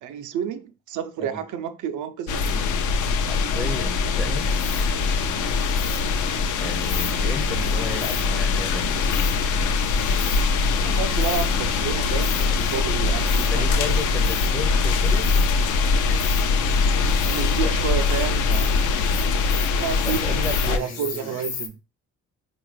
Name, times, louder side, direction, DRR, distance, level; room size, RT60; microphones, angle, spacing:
voice 1, 0.0-2.7 5.9-6.0 10.7-14.0 16.1-16.4 17.2-18.7 19.8-20.4 20.7-21.8, right 8 dB, 75° right, 0.5 m, -30 dB
sound 1, 2.3-20.8, left 4 dB, 80° left, 0.6 m, -22 dB
voice 2, 3.3-4.5 6.5-9.0 13.5-15.3 17.6-17.7 20.0-21.4, left 2 dB, 5° left, 0.5 m, -34 dB
Insect, 4.3-21.7, left 6 dB, 60° left, 0.9 m, -38 dB
3.8 x 2.4 x 3.2 m
cardioid pair, 90°, 30 cm